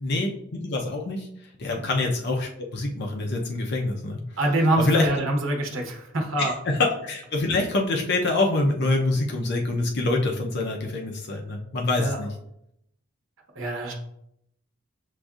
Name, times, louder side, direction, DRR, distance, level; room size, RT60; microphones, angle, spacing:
voice 1, 0.0-1.3 1.6-4.2 4.9-5.0 6.4-6.5 6.8-12.3, left 2 dB, 60° left, 1 dB, 0.6 m, -25 dB
voice 2, 4.4-6.5 11.9-12.2 13.5-13.9, right 1 dB, 80° right, 1 dB, 1.0 m, -25 dB
7.6 x 2.6 x 2.4 m, 0.77 s
head